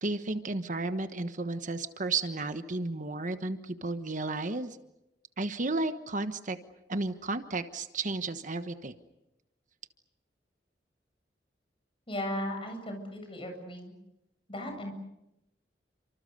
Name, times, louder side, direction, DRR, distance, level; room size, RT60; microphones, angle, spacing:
voice 1, 0.0-4.8 5.4-6.6 6.9-8.9, right 3 dB, 45° right, 9 dB, 1.3 m, -33 dB
voice 2, 12.1-13.9 14.5-14.9, left 1 dB, 30° left, 5 dB, 7.9 m, -36 dB
30.0 x 26.0 x 6.7 m, 0.88 s
head